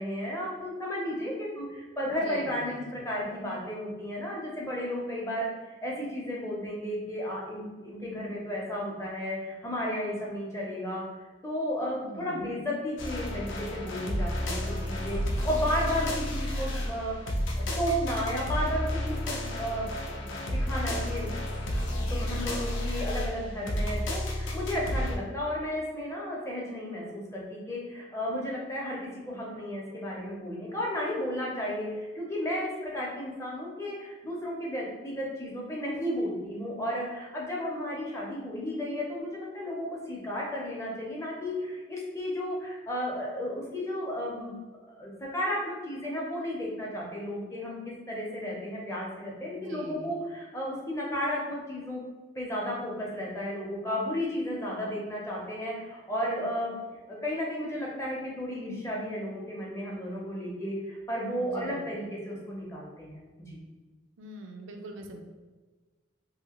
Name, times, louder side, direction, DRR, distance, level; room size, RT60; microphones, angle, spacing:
voice 1, 0.0-11.1 11.4-17.2 17.6-21.3 22.1-44.6 44.9-52.1 52.4-56.7 57.1-63.6, equal, 15° left, -3 dB, 0.6 m, -33 dB
voice 2, 2.1-3.1 12.0-12.5 49.5-50.1 61.4-61.8 64.2-65.2, right 1 dB, 80° right, 3 dB, 0.4 m, -44 dB
sound 1, 13.0-25.2, left 1 dB, 80° left, 0.5 m, -31 dB
2.8 x 2.6 x 2.9 m, 1.3 s
head